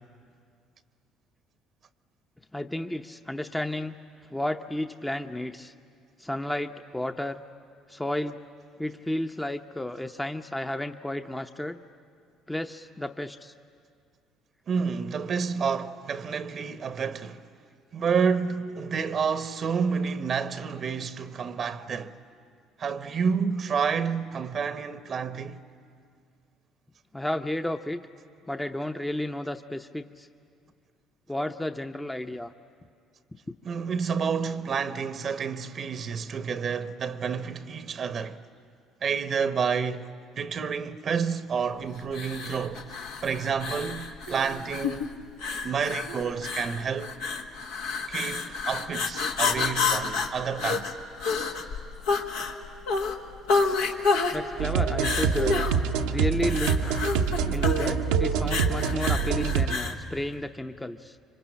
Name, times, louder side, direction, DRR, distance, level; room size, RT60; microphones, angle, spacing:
voice 1, 2.5-4.0 4.3-5.7 6.2-7.4 7.9-8.4 8.8-11.8 12.5-13.5 27.1-28.1 28.5-30.3 31.3-32.5 33.5-33.6 54.3-55.7 56.1-57.0 57.5-61.2, left 1 dB, 10° left, 0.8 m, -32 dB
voice 2, 14.7-17.4 17.9-22.1 22.8-25.6 33.6-38.4 39.0-40.1 40.4-45.1 45.6-47.1 48.1-50.9, right 6 dB, 50° right, 0.9 m, -29 dB
sound 1, 42.1-60.0, left 4 dB, 80° left, 1.7 m, -29 dB
sound 2, 54.6-59.7, right 6 dB, 80° right, 0.9 m, -26 dB
27.0 x 25.0 x 8.8 m
hypercardioid pair, 60°, 0 cm